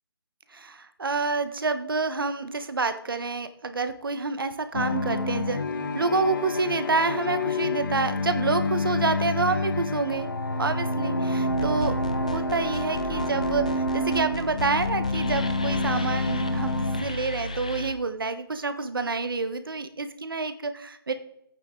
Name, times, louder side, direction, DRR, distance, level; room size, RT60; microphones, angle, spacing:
voice 1, 0.5-5.6 5.9-10.3 10.6-11.9 12.2-21.1, right 4 dB, 60° right, 10 dB, 1.2 m, -28 dB
sound 1, 4.7-17.0, left 2 dB, 55° left, 1.3 m, -28 dB
sound 2, 11.5-17.9, left 2 dB, 15° left, 0.4 m, -34 dB
14.5 x 9.1 x 3.8 m, 0.80 s
hypercardioid pair, 180°, 13 cm